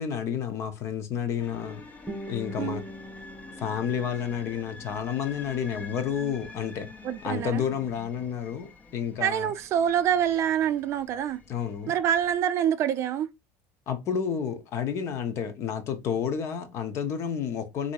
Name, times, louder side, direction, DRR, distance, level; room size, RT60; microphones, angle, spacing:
voice 1, 0.0-1.8 2.3-2.9 3.5-6.9 7.2-9.5 11.5-11.9 13.9-17.9, left 7 dB, 45° left, 0.9 m, -30 dB
sound 1, 1.4-12.4, left 3 dB, 20° left, 0.7 m, -47 dB
Guitar, 2.1-5.1, equal, ahead, 1.2 m, -42 dB
voice 2, 7.0-7.6 9.2-11.4 11.9-13.3, right 9 dB, 45° right, 0.5 m, -26 dB
4.0 x 2.7 x 4.6 m
cardioid pair, 145°, 7 cm